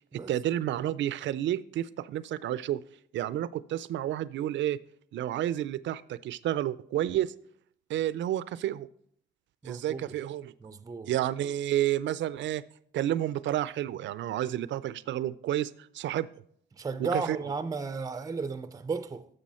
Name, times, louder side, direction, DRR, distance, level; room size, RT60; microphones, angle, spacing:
voice 1, 0.1-2.8 3.1-4.8 5.1-7.3 7.9-8.9 9.6-10.5 11.1-12.6 12.9-16.3 17.0-17.4, right 12 dB, 70° right, 0.5 m, -30 dB
voice 2, 9.6-10.1 10.6-11.1 16.8-19.3, right 4 dB, 20° right, 0.5 m, -34 dB
11.5 x 7.0 x 4.3 m
cardioid pair, 90°, 20 cm